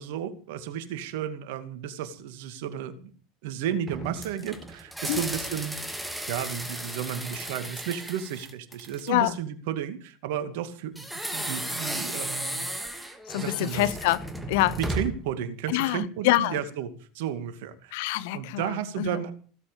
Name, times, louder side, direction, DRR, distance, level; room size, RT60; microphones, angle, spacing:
voice 1, 0.0-3.1 3.4-5.8 6.3-11.0 11.3-13.9 14.8-18.0 18.3-19.3, right 9 dB, 60° right, 2.4 m, -33 dB
sound 1, 3.9-9.2 10.9-15.3, right 1 dB, 5° right, 2.7 m, -35 dB
voice 2, 9.1-9.4 13.3-14.8 15.7-16.6 17.9-19.2, left 16 dB, 60° left, 0.9 m, -26 dB
16.5 x 14.0 x 5.4 m
figure-of-eight pair, 75°, 0 cm